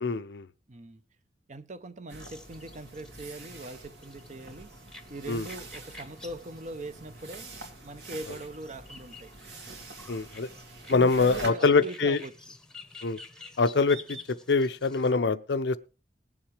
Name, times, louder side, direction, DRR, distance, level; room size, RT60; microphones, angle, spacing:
voice 1, 0.0-0.5 5.3-5.5 10.1-10.5 10.9-12.2 13.0-13.2 13.6-15.8, left 4 dB, 70° left, 0.6 m, -24 dB
voice 2, 0.7-1.0 1.5-4.7 5.1-7.5 7.8-9.3 10.9-12.3, right 2 dB, 40° right, 0.8 m, -41 dB
sound 1, 2.1-11.5, right 2 dB, 70° right, 2.1 m, -46 dB
sound 2, 2.2-15.1, left 2 dB, 5° left, 1.0 m, -50 dB
20.0 x 7.3 x 3.3 m
head